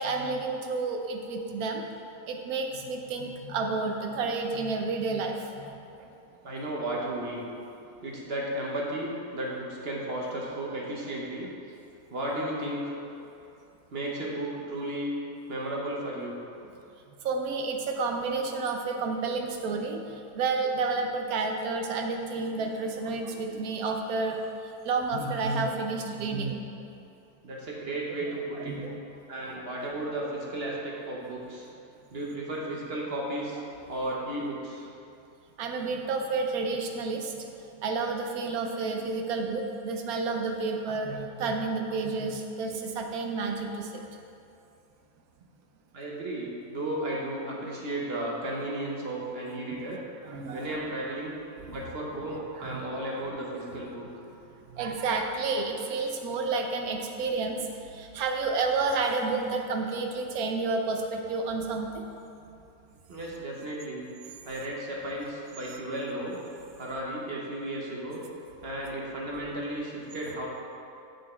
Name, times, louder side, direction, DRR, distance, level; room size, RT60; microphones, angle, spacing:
voice 1, 0.0-1.8 2.3-5.7 6.0-6.1 17.2-24.4 24.8-26.6 28.6-29.0 35.6-37.5 37.8-44.0 50.2-50.8 52.5-52.8 54.7-62.0, right 3 dB, 75° right, 3 dB, 1.2 m, -30 dB
voice 2, 6.4-7.5 8.0-11.5 12.1-12.9 13.9-15.1 15.5-16.4 27.4-28.7 29.3-31.7 32.1-33.6 33.9-34.9 45.9-50.0 50.5-51.3 51.7-54.1 63.1-64.1 64.4-66.4 66.8-68.2 68.6-70.5, right 1 dB, 45° right, -3 dB, 1.2 m, -34 dB
6.6 x 6.2 x 4.4 m, 2.6 s
omnidirectional pair, 1.6 m